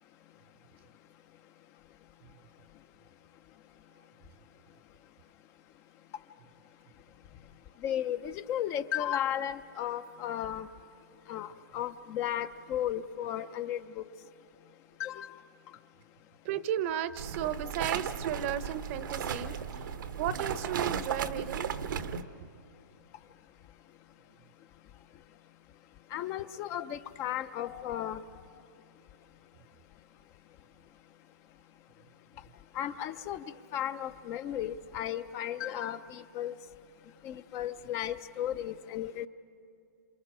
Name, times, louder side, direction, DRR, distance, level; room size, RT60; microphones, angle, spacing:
voice 1, 7.8-10.7 11.3-14.0 15.0-15.3 26.1-28.2 32.7-33.4 33.7-36.5 37.2-39.3, left 11 dB, 25° left, 12 dB, 0.4 m, -34 dB
voice 2, 16.4-21.7, right 10 dB, 40° right, 14 dB, 0.7 m, -35 dB
sound 1, 17.2-22.2, right 7 dB, 80° right, 1.0 m, -35 dB
27.5 x 27.5 x 4.9 m, 2.5 s
hypercardioid pair, 155°, 11 cm